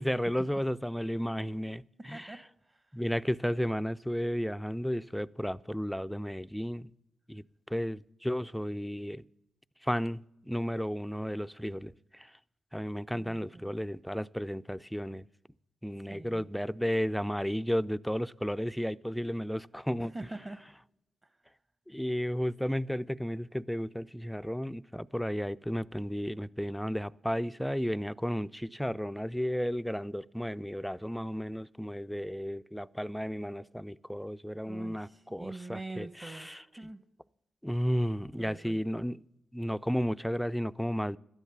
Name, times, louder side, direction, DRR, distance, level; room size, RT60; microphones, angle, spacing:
voice 1, 0.0-2.3 2.9-6.9 7.3-9.2 9.8-12.3 12.7-15.2 15.8-20.1 21.9-36.6 37.6-39.2 39.5-41.2, equal, ahead, 0.4 m, -33 dB
voice 2, 2.1-3.0 13.1-13.7 16.0-16.5 20.0-20.6 21.2-21.5 34.6-36.5 36.8-37.0 38.4-38.8, right 2 dB, 30° right, 1.1 m, -45 dB
13.0 x 10.5 x 7.0 m
cardioid pair, 55°, 0 cm